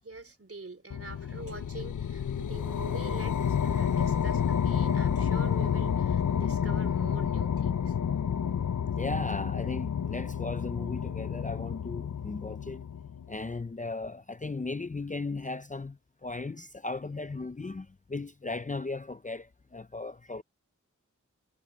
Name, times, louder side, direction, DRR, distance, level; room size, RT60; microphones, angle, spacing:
voice 1, 0.0-8.0, right 3 dB, 45° right, 3.9 m, -45 dB
sound 1, 0.9-13.4, left 8 dB, 80° left, 0.7 m, -30 dB
voice 2, 9.0-12.8 13.3-20.4, left 3 dB, 25° left, 0.6 m, -36 dB
wide cardioid pair, 65°, 31 cm